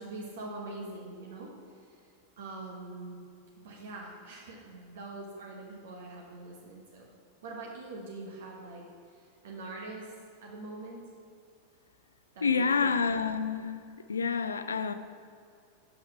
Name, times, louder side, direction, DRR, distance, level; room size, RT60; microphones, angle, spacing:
voice 1, 0.0-2.0 2.4-3.2 3.6-7.1 7.4-10.1 10.4-11.0 12.3-13.0, right 2 dB, 60° right, -2 dB, 1.0 m, -43 dB
voice 2, 12.4-13.8 14.1-14.9, left 5 dB, 75° left, 11 dB, 0.4 m, -28 dB
6.8 x 5.7 x 5.4 m, 2.3 s
figure-of-eight pair, 90°, 0 cm